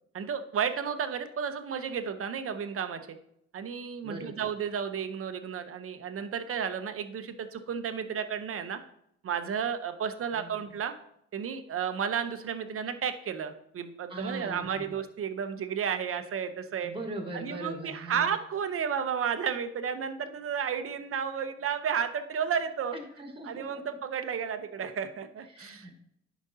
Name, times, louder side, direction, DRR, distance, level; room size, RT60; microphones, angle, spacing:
voice 1, 0.1-3.0 3.5-8.8 9.2-10.9 11.3-16.9 17.3-23.0 23.4-25.8, right 7 dB, 45° right, 9 dB, 0.8 m, -32 dB
voice 2, 4.0-4.5 10.3-10.7 14.1-14.9 16.8-18.3 22.9-23.8 25.5-26.0, right 1 dB, 15° right, 3 dB, 1.5 m, -40 dB
11.0 x 5.2 x 2.8 m, 0.75 s
cardioid pair, 90°, 30 cm